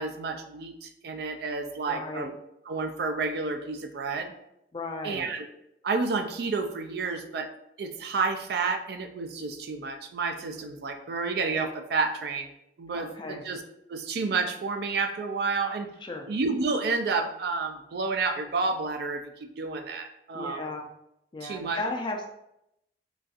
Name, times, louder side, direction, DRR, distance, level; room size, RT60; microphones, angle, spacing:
voice 1, 0.0-2.4 2.7-4.3 5.0-5.5 5.8-7.5 7.8-12.5 12.8-13.6 13.9-15.9 16.3-20.6 21.4-21.8, right 4 dB, 60° right, 6 dB, 0.3 m, -30 dB
voice 2, 1.9-2.3 4.7-5.3 12.9-13.4 16.0-16.3 20.3-20.9 21.3-22.3, left 2 dB, 25° left, 3 dB, 0.4 m, -35 dB
3.9 x 2.4 x 2.3 m, 0.82 s
head